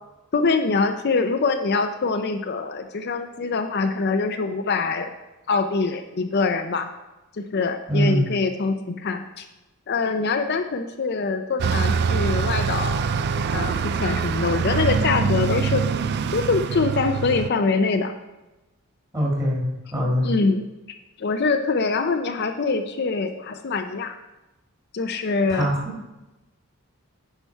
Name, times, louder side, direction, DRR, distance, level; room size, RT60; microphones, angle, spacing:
voice 1, 0.3-5.1 5.5-6.9 7.3-9.5 9.9-13.0 13.5-15.8 16.3-18.1 20.2-20.6 21.2-24.1 24.9-25.7, left 4 dB, 45° left, 6 dB, 0.5 m, -24 dB
voice 2, 7.9-8.2 19.1-19.6 19.9-20.3 25.5-25.7, equal, 15° right, -3 dB, 2.0 m, -22 dB
Bus, 11.6-17.5, right 6 dB, 45° right, 0.3 m, -24 dB
9.9 x 5.7 x 4.6 m, 1.0 s
head